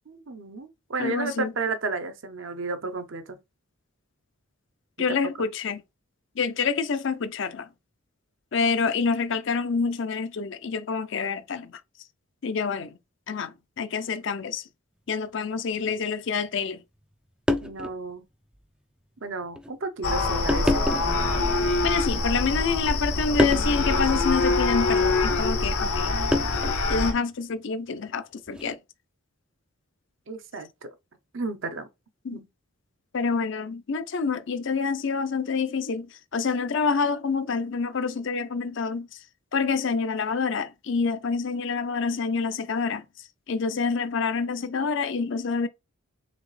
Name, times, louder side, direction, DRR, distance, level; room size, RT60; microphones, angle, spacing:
voice 1, 0.1-3.4 17.6-18.2 19.2-20.8 30.3-30.9 31.3-31.9 32.3-32.5, right 3 dB, 60° right, 0.7 m, -32 dB
voice 2, 1.0-1.5 5.0-5.8 6.4-7.7 8.5-11.8 12.4-12.9 13.3-14.6 15.1-16.8 21.8-26.2 26.9-28.8 32.2-32.4 33.1-36.1 36.3-39.1 39.5-43.0 43.5-45.7, left 5 dB, 55° left, 0.5 m, -27 dB
sound 1, 15.8-15.9 17.0-17.1 17.5-18.0 18.5-18.6 19.5-19.7 20.5-21.2 22.0-22.7 23.4-23.7 25.3-25.5 26.3-26.9 28.5-28.8, left 1 dB, 5° right, 0.3 m, -27 dB
sound 2, 20.0-27.1, left 3 dB, 85° left, 0.9 m, -25 dB
4.0 x 3.5 x 3.2 m
head